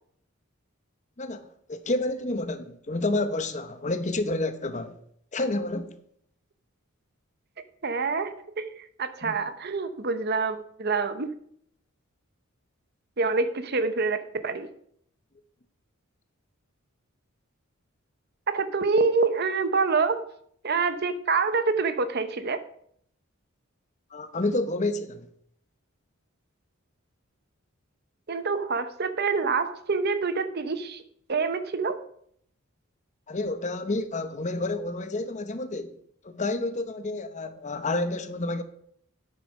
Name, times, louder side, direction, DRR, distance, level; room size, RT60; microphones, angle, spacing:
voice 1, 1.2-5.0 5.3-6.0 9.2-9.4 24.1-25.3 33.3-36.0 36.2-38.6, left 2 dB, 35° left, 0.8 m, -29 dB
voice 2, 7.8-11.3 13.2-14.7 18.5-20.3 20.6-22.6 28.3-31.0 31.3-32.0, right 4 dB, 50° right, 0.9 m, -26 dB
9.6 x 8.0 x 5.2 m
head